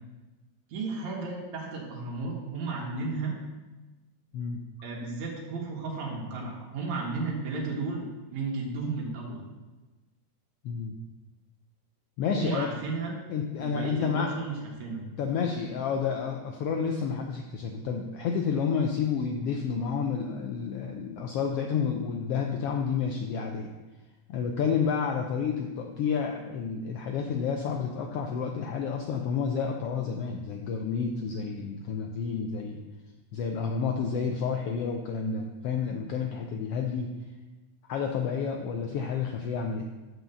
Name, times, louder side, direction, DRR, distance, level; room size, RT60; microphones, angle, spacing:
voice 1, 0.7-3.3 4.8-8.0 8.3-9.4 12.3-13.2 13.6-15.0, right 3 dB, 75° right, -2 dB, 2.8 m, -33 dB
voice 2, 10.6-11.0 12.2-12.7 13.3-14.3 15.2-23.7 24.3-32.8 33.3-37.1 37.9-39.9, left 6 dB, 80° left, 3 dB, 1.3 m, -30 dB
8.0 x 4.7 x 6.9 m, 1.2 s
omnidirectional pair, 3.4 m